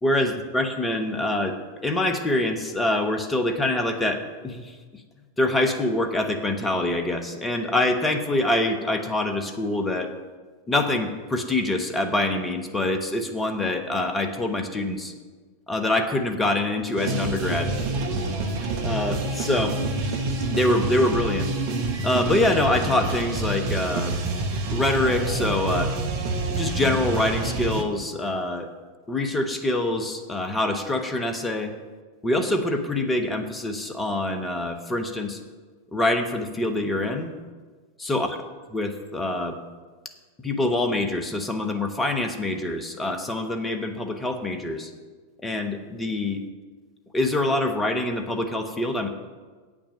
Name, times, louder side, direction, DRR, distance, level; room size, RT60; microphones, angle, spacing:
voice 1, 0.0-1.6 1.8-5.0 5.4-10.1 10.7-15.1 15.7-17.9 18.8-19.8 20.5-21.5 22.0-24.2 24.7-25.9 26.5-28.7 29.1-31.7 32.2-35.4 35.9-37.3 38.0-38.3 38.7-39.6 40.4-44.9 45.4-46.4 47.1-49.1, left 1 dB, 15° left, 5 dB, 1.1 m, -25 dB
sound 1, 17.0-27.8, right 2 dB, 45° right, 1.2 m, -27 dB
8.5 x 6.2 x 8.1 m, 1.4 s
figure-of-eight pair, 90°, 0 cm